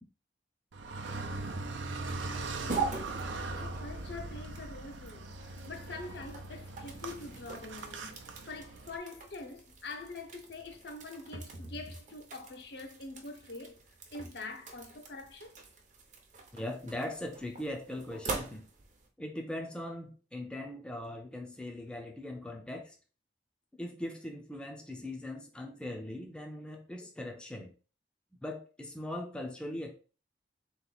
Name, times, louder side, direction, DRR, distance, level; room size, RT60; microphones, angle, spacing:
Car, 0.7-9.0, right 2 dB, 85° right, 0.6 m, -40 dB
sound 1, 1.1-19.1, right 4 dB, 40° right, 0.7 m, -44 dB
voice 1, 2.3-3.3 3.5-13.8 14.1-15.6, left 3 dB, 60° left, 0.7 m, -45 dB
voice 2, 16.5-18.7 19.2-23.0 23.7-27.7 28.4-29.9, left 1 dB, 5° left, 0.5 m, -40 dB
3.7 x 3.0 x 3.9 m
head